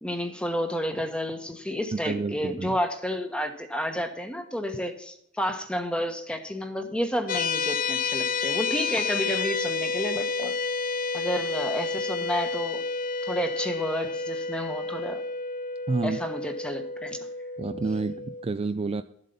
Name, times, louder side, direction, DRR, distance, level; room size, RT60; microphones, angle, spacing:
voice 1, 0.0-10.6 11.1-12.8 13.2-15.2 16.0-17.2, equal, 5° left, 7 dB, 1.2 m, -30 dB
voice 2, 1.9-2.7 15.9-16.2 17.6-19.0, right 3 dB, 30° right, 11 dB, 0.4 m, -29 dB
sound 1, 7.3-18.5, left 4 dB, 45° left, 0.9 m, -30 dB
13.0 x 7.5 x 5.4 m, 0.72 s
head